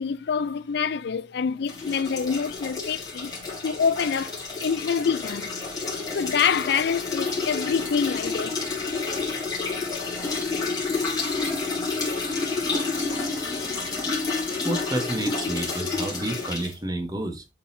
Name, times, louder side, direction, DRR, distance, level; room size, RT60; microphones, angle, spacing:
voice 1, 0.0-3.3 3.6-5.5 6.1-8.6 12.4-12.6 13.2-13.5, left 6 dB, 65° left, 0.4 m, -26 dB
sound 1, 1.6-16.8, left 4 dB, 20° left, 3.1 m, -29 dB
voice 2, 14.6-17.5, right 1 dB, 20° right, 1.2 m, -30 dB
10.5 x 3.9 x 2.7 m
head